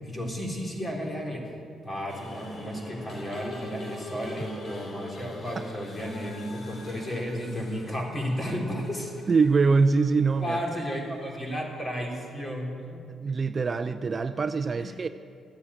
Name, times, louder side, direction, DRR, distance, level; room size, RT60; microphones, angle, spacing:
voice 1, 0.0-1.5 1.8-9.1 10.4-13.0 14.7-14.9, equal, 25° left, 0 dB, 3.6 m, -33 dB
sound 1, 2.1-11.5, left 1 dB, 45° left, 2.7 m, -44 dB
voice 2, 9.3-10.6 13.2-15.1, right 4 dB, 35° right, 10 dB, 0.5 m, -23 dB
14.0 x 9.8 x 8.8 m, 2.5 s
cardioid pair, 90°, 0 cm